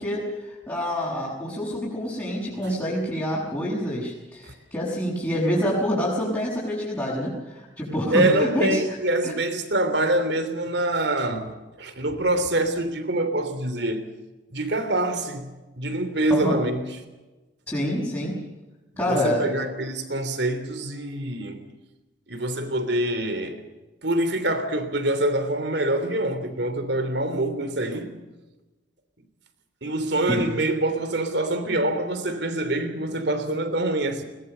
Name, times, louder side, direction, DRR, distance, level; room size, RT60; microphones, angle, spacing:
voice 1, 0.0-9.0 9.2-9.3 16.3-16.6 17.7-18.4 19.0-19.5 30.3-30.4, equal, 15° left, 6.3 m, -27 dB
voice 2, 8.1-11.5 11.8-14.1 14.5-15.5 15.8-16.9 19.0-21.7 22.3-23.7 24.0-28.1 29.8-34.2, right 1 dB, 60° right, 3.1 m, -25 dB
21.5 x 20.0 x 6.8 m
head